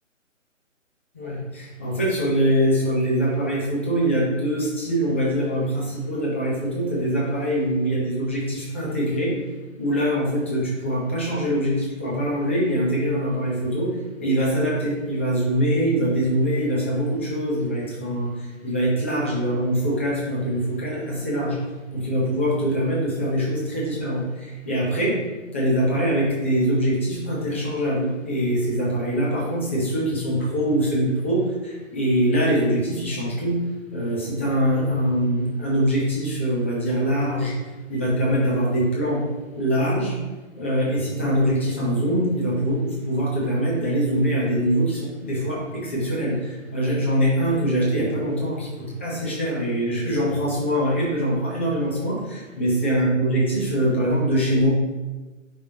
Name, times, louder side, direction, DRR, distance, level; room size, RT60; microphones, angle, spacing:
voice 1, 1.1-9.4 9.8-21.6 21.9-25.2 25.5-33.6 33.9-37.6 37.9-39.2 39.5-40.2 40.6-54.7, right 1 dB, 10° left, -5 dB, 0.6 m, -23 dB
8.2 x 5.2 x 2.8 m, 1.2 s
hypercardioid pair, 160°, 39 cm